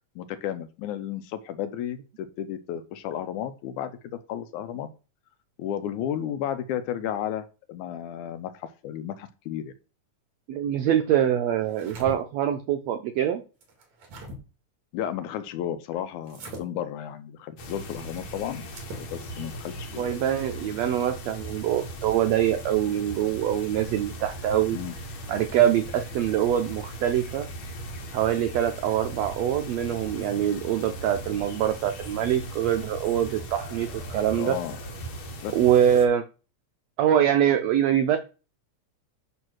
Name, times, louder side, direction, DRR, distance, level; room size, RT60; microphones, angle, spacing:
voice 1, 0.2-3.9 4.3-4.9 5.6-9.7 14.9-18.7 19.0-20.1 24.7-24.9 34.4-34.8 35.4-35.6, left 10 dB, 80° left, 11 dB, 2.0 m, -33 dB
voice 2, 10.5-13.4 20.0-24.8 25.3-27.5 28.1-34.6 35.5-36.2 37.0-38.2, right 10 dB, 80° right, 7 dB, 1.5 m, -24 dB
sound 1, 11.6-12.2 13.6-14.4 16.3-16.6 18.6-19.1, right 1 dB, 60° right, 3.2 m, -40 dB
sound 2, 17.6-36.1, right 1 dB, 60° left, 1.5 m, -39 dB
9.0 x 3.2 x 6.3 m, 0.34 s
omnidirectional pair, 3.7 m